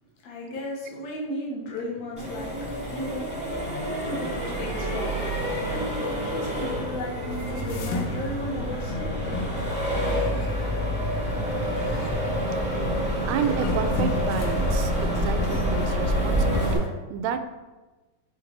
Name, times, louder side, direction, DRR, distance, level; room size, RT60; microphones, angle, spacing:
voice 1, 0.2-2.6 2.9-3.3 4.0-5.3 5.7-9.4, left 1 dB, 70° left, -4 dB, 2.5 m, -34 dB
Accelerating revving vroom, 2.2-16.7, equal, 5° right, 0.7 m, -27 dB
sound 1, 7.3-8.5 8.9-10.9 11.2-12.1 13.2-16.2 16.5-16.9, left 3 dB, 85° left, 2.2 m, -34 dB
voice 2, 13.3-17.4, right 7 dB, 80° right, 9 dB, 1.6 m, -30 dB
6.7 x 4.1 x 3.9 m, 1.2 s
omnidirectional pair, 3.5 m